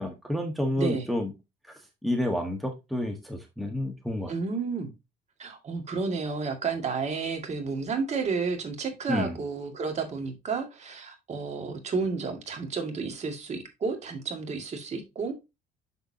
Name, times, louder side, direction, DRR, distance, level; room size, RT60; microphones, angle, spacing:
voice 1, 0.0-1.3 1.6-4.3 9.1-9.4, left 1 dB, ahead, 1.4 m, -30 dB
voice 2, 4.3-4.9 5.4-15.4, right 4 dB, 40° right, 2.1 m, -31 dB
6.7 x 6.7 x 2.8 m
cardioid pair, 110°, 17 cm